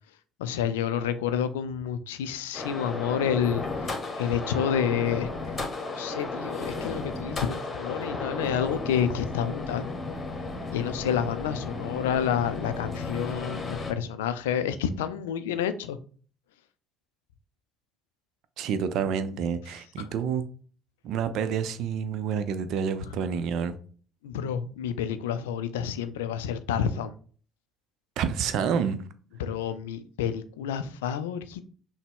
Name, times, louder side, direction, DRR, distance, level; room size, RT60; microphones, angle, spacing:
voice 1, 0.4-5.3 5.9-9.9 10.7-16.0 20.0-20.1 24.2-27.1 29.4-31.7, left 8 dB, 80° left, 0.3 m, -29 dB
sound 1, 2.5-13.9, left 3 dB, 30° left, 1.1 m, -34 dB
voice 2, 18.6-20.4 21.0-23.8 28.2-29.0, right 7 dB, 60° right, 0.4 m, -28 dB
5.8 x 2.0 x 3.5 m
hypercardioid pair, 55°, 0 cm